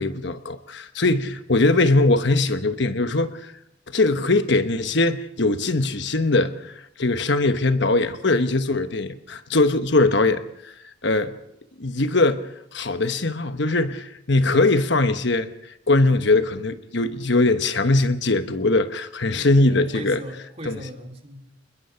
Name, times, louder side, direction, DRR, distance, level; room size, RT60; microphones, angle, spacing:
voice 1, 0.0-3.5 3.9-11.3 11.8-15.5 15.9-20.2 20.6-20.8, left 2 dB, 60° left, 1.2 m, -21 dB
voice 2, 19.3-21.5, equal, 30° right, 2.9 m, -38 dB
28.0 x 21.5 x 5.8 m
head